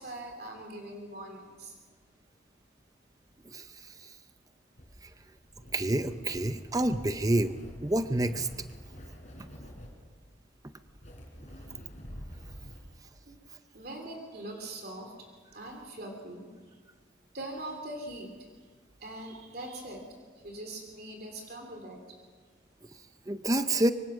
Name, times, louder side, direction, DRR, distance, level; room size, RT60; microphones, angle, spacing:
voice 1, 0.0-1.8 13.7-15.1 15.5-16.5 17.3-18.3 19.0-20.0 20.4-22.0, right 1 dB, 50° right, 3 dB, 3.1 m, -41 dB
sound 1, 4.8-12.8, equal, 40° left, 4.8 m, -47 dB
voice 2, 5.7-8.5 23.3-23.9, right 1 dB, 20° right, 10 dB, 0.6 m, -28 dB
25.0 x 24.0 x 6.3 m, 1.5 s
head